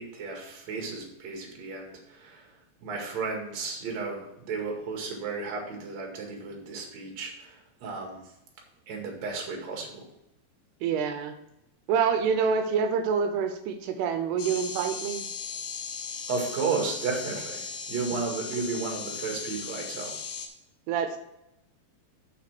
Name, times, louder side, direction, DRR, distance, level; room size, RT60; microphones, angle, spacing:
voice 1, 0.0-2.5 2.8-8.2 8.9-10.0 16.3-20.1, right 4 dB, 50° right, 1 dB, 2.8 m, -33 dB
voice 2, 10.8-11.3 11.9-15.2 20.9-21.2, right 6 dB, 85° right, 7 dB, 2.7 m, -26 dB
sound 1, 14.4-20.5, left 5 dB, 65° left, 2.6 m, -37 dB
7.5 x 5.8 x 5.9 m, 0.84 s
omnidirectional pair, 4.6 m